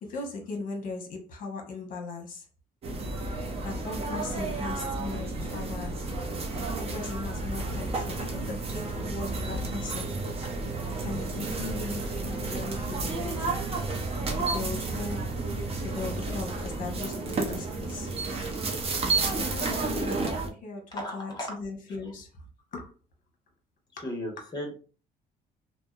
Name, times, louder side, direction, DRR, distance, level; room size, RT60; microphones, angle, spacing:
voice 1, 0.0-2.5 3.6-6.0 6.8-10.1 11.0-13.7 14.4-15.3 15.8-18.1 19.4-22.4 22.7-22.9 24.0-24.1 24.4-24.5, left 3 dB, 55° left, 0.9 m, -38 dB
sound 1, 2.8-20.5, right 3 dB, 35° right, 0.6 m, -31 dB
voice 2, 21.0-21.5 24.0-24.8, left 1 dB, 25° left, 1.1 m, -35 dB
2.7 x 2.1 x 2.3 m
cardioid pair, 110°, 17 cm